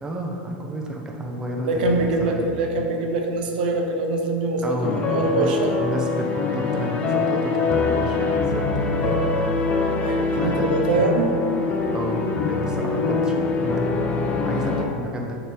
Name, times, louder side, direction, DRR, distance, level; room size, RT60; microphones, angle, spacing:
voice 1, 0.0-2.4 4.6-5.5 5.8-8.7 9.0-9.2 10.3-10.7 11.0-11.1 11.9-13.9 14.3-15.4, right 1 dB, 15° right, 0 dB, 0.7 m, -31 dB
voice 2, 1.6-4.8 5.1-5.7 9.0-9.2 9.8-11.4, right 2 dB, 75° right, 3 dB, 0.7 m, -24 dB
sound 1, 4.8-14.8, left 4 dB, 25° left, 0.6 m, -23 dB
6.5 x 3.0 x 5.1 m, 2.5 s
supercardioid pair, 125°, 5 cm